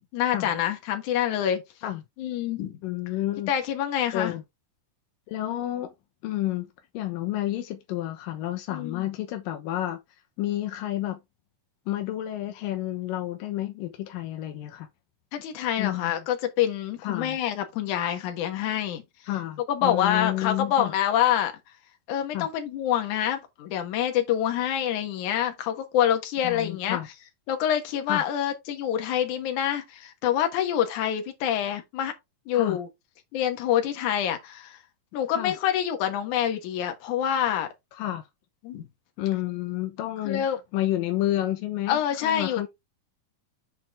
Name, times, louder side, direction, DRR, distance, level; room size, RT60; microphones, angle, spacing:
voice 1, 0.1-1.6 2.2-2.8 3.5-4.3 8.7-9.1 15.3-19.0 19.7-21.5 22.1-27.0 27.5-32.1 32.5-32.9 33.3-34.8 35.1-37.7 38.6-38.9 40.2-40.6 41.9-42.7, left 10 dB, 70° left, 2.6 m, -26 dB
voice 2, 2.8-3.5 4.1-4.4 5.3-5.9 6.2-6.7 6.9-10.0 10.4-11.2 11.9-14.9 15.8-16.1 17.0-17.4 19.3-20.9 22.3-22.5 26.4-27.1 28.1-28.2 32.5-32.8 35.4-35.5 38.0-38.2 39.2-40.5 40.7-42.7, left 14 dB, 85° left, 2.6 m, -30 dB
7.9 x 4.4 x 3.5 m
omnidirectional pair, 3.9 m